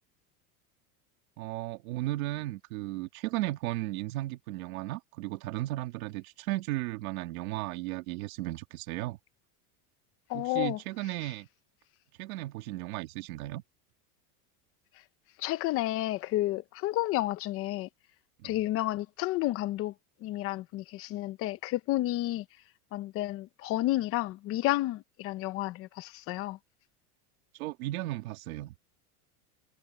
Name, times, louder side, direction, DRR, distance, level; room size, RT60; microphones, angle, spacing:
voice 1, 1.4-9.2 10.3-11.5 12.2-13.6 18.4-18.6 27.5-28.8, right 17 dB, 65° right, 2.1 m, -35 dB
voice 2, 10.3-10.8 15.4-17.9 18.4-19.9 20.2-22.4 22.9-26.6, left 16 dB, 30° left, 0.8 m, -31 dB
supercardioid pair, 165°, 45 cm